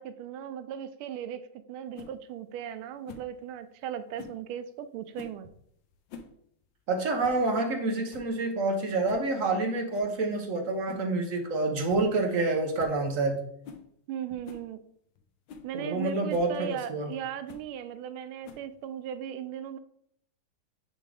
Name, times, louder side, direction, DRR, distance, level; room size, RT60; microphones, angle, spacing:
voice 1, 0.0-5.5 14.1-14.8 15.6-19.8, right 10 dB, 85° right, 11 dB, 1.4 m, -37 dB
sound 1, 1.9-2.1 3.1-3.3 4.2-4.4 5.1-5.4 5.9-6.4 6.6-6.7 7.2-7.4 7.8-7.9 8.1-8.4 9.1-9.3 9.9-10.1 10.9-11.1 11.5-11.6 11.9-12.1 12.4-12.5 12.8-13.0 13.6-13.9 14.4-14.7 15.2-15.3 15.5-15.7 16.3-16.5 17.5-17.7 18.4-18.8, left 5 dB, 70° left, 1.3 m, -47 dB
voice 2, 6.9-13.4 15.7-17.1, right 2 dB, 55° right, 3 dB, 1.0 m, -28 dB
9.5 x 3.5 x 3.4 m, 0.69 s
omnidirectional pair, 2.3 m